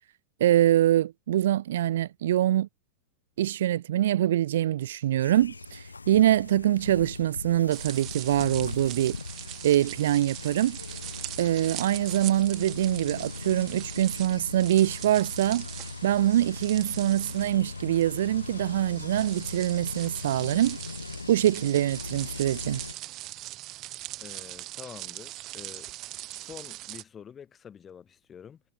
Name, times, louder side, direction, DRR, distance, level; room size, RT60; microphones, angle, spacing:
voice 1, 0.4-2.7 3.4-9.2 9.6-10.8 11.4-15.7 16.0-20.8 21.3-22.8, right 12 dB, 60° right, 0.4 m, -24 dB
sound 1, 5.2-22.9, left 4 dB, 80° left, 0.6 m, -40 dB
sound 2, 7.7-27.0, right 17 dB, 35° right, 4.1 m, -41 dB
voice 2, 24.2-25.9 26.2-28.6, left 8 dB, 20° left, 3.3 m, -47 dB
figure-of-eight pair, 90°, 0 cm